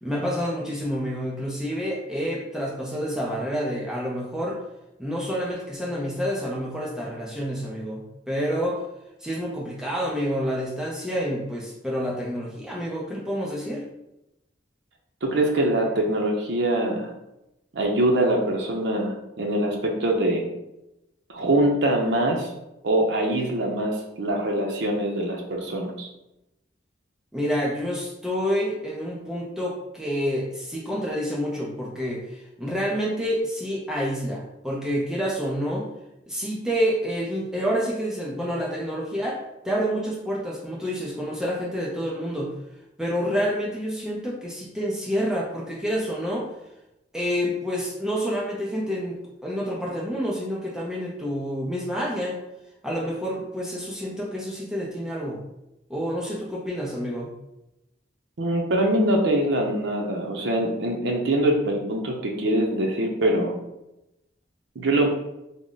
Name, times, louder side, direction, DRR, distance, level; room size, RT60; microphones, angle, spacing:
voice 1, 0.0-4.6 5.0-8.8 9.2-13.8 27.3-35.9 36.3-42.5 43.0-46.5 47.1-52.4 52.8-55.4 55.9-57.3, equal, 5° right, -4 dB, 0.5 m, -28 dB
voice 2, 15.2-17.1 17.7-20.4 21.3-22.5 22.8-26.1 58.4-63.5 64.8-65.1, right 1 dB, 75° right, 0 dB, 0.5 m, -23 dB
3.5 x 2.0 x 3.8 m, 0.89 s
head